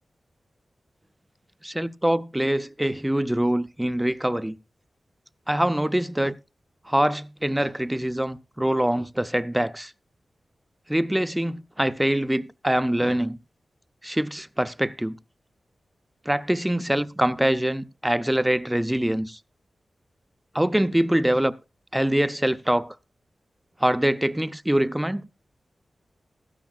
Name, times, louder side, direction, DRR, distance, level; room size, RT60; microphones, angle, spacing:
voice 1, 1.6-4.6 5.5-6.4 6.9-9.9 10.9-13.4 14.0-15.2 16.3-19.4 20.5-21.5 21.9-23.0 23.8-25.3, right 1 dB, 10° right, 0.5 m, -24 dB
16.5 x 13.0 x 2.3 m
wide cardioid pair, 100°, 0 cm